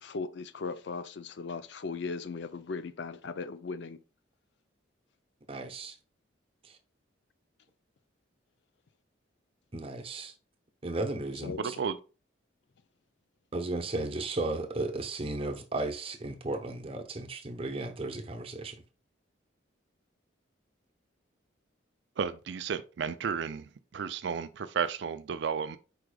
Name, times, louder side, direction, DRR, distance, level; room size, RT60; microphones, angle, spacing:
voice 1, 0.0-4.0 11.4-11.7, left 4 dB, 60° left, 0.4 m, -38 dB
voice 2, 5.5-6.0 6.6-6.8 9.7-10.3 10.8-11.8 13.5-18.8, right 2 dB, 30° right, 0.7 m, -35 dB
voice 3, 11.6-11.9 22.2-23.6 23.9-25.8, right 6 dB, 60° right, 0.4 m, -32 dB
4.8 x 4.8 x 2.3 m
head